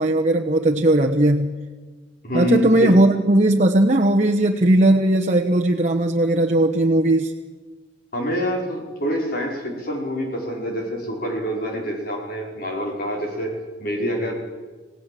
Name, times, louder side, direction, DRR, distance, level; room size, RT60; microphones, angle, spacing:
voice 1, 0.0-1.5 2.3-7.3, right 1 dB, 40° right, 2 dB, 1.1 m, -18 dB
voice 2, 2.2-3.0 8.1-14.3, equal, 55° left, 0 dB, 4.9 m, -26 dB
27.5 x 17.5 x 7.6 m, 1.4 s
head